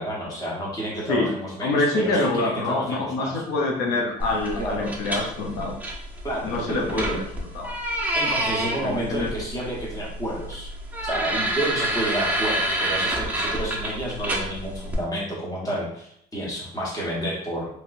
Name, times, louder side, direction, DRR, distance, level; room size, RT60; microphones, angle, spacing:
voice 1, 0.0-3.4 4.6-4.9 6.2-7.2 8.1-10.7 11.0-17.7, right 1 dB, 20° left, -4 dB, 1.2 m, -30 dB
voice 2, 1.6-5.8 6.4-7.3 7.5-7.7 8.8-9.3, left 2 dB, 85° left, 0 dB, 0.6 m, -25 dB
sound 1, 4.2-15.0, right 1 dB, 10° right, 0.6 m, -28 dB
3.0 x 2.9 x 2.5 m, 0.71 s
cardioid pair, 110°, 17 cm